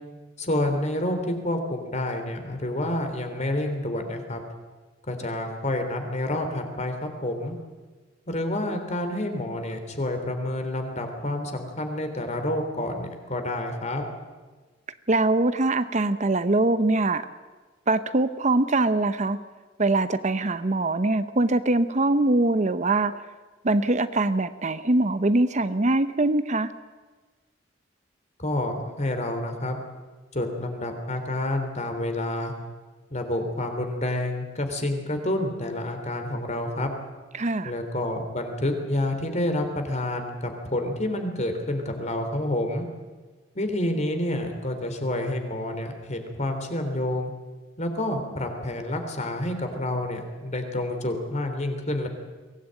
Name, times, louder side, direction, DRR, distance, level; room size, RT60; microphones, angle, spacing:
voice 1, 0.4-4.4 5.1-7.6 8.3-14.0 28.4-29.8 30.3-32.5 33.1-36.9 37.6-42.8 43.6-47.3 47.8-52.1, left 1 dB, 40° left, 6 dB, 3.5 m, -28 dB
voice 2, 15.1-17.2 17.9-19.4 19.8-23.1 23.6-26.7 37.3-37.7, right 2 dB, 40° right, 12 dB, 0.8 m, -23 dB
23.0 x 17.5 x 9.0 m, 1.3 s
head